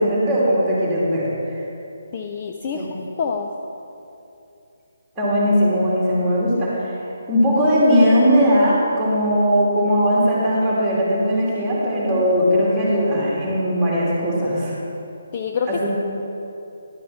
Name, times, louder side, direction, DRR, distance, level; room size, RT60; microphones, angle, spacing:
voice 1, 0.0-1.6 2.7-2.9 5.2-7.0 7.3-14.7 15.7-15.9, equal, 5° right, -8 dB, 2.5 m, -19 dB
voice 2, 2.1-3.5 15.3-15.9, left 6 dB, 25° left, 2 dB, 0.4 m, -27 dB
11.5 x 7.4 x 5.8 m, 2.8 s
hypercardioid pair, 170°, 0 cm